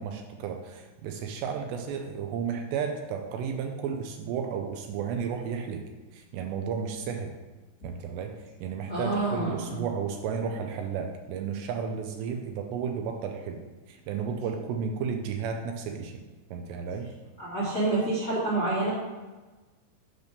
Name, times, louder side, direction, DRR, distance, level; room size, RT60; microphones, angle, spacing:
voice 1, 0.0-7.3 7.8-16.1 16.5-17.1, right 6 dB, 80° right, 4 dB, 2.6 m, -33 dB
voice 2, 8.9-9.8 17.4-18.9, right 2 dB, 50° left, -9 dB, 0.9 m, -28 dB
8.1 x 3.5 x 6.5 m, 1.2 s
omnidirectional pair, 5.2 m